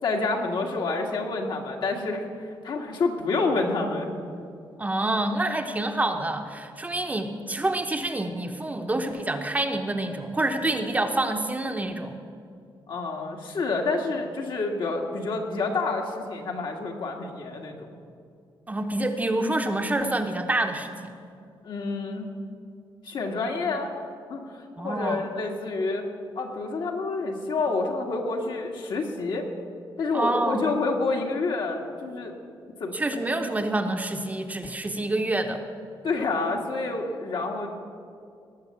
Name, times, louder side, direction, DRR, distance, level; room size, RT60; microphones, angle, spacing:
voice 1, 0.0-4.1 12.9-18.0 21.6-22.3 23.0-23.9 24.3-26.0 26.4-29.5 30.0-32.3 32.8-32.9 33.2-33.4 36.0-37.7, left 3 dB, 60° left, 1 dB, 1.9 m, -28 dB
voice 2, 4.8-12.2 18.7-21.1 24.8-25.2 30.1-30.6 32.9-35.6, right 2 dB, 15° right, 5 dB, 0.9 m, -27 dB
19.0 x 6.6 x 8.5 m, 2.4 s
cardioid pair, 130°, 9 cm